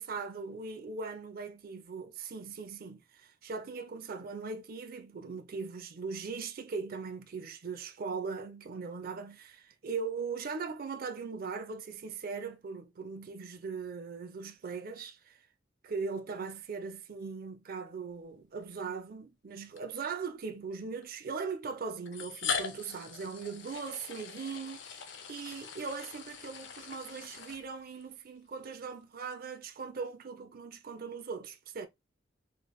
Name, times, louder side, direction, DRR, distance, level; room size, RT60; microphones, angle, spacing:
voice 1, 0.0-15.4 15.8-31.9, right 5 dB, 50° right, 0.5 m, -40 dB
sound 1, 18.6-18.7 19.8-19.9 21.0-21.1 22.1-28.0, left 6 dB, 65° left, 0.5 m, -40 dB
3.1 x 3.1 x 2.2 m
head